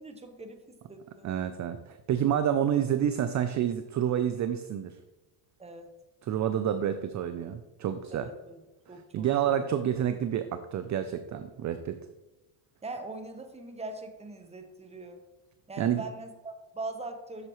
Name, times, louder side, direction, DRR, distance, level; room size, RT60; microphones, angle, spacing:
voice 1, 0.0-1.3 5.6-5.9 8.1-8.6 8.9-9.3 9.6-9.7 12.8-15.2 15.7-17.5, right 2 dB, 15° right, 6 dB, 0.9 m, -41 dB
voice 2, 1.2-5.0 6.2-8.3 8.9-12.0 15.8-16.0, right 9 dB, 40° right, 10 dB, 0.4 m, -29 dB
8.1 x 6.7 x 3.0 m, 1.1 s
cardioid pair, 110°, 49 cm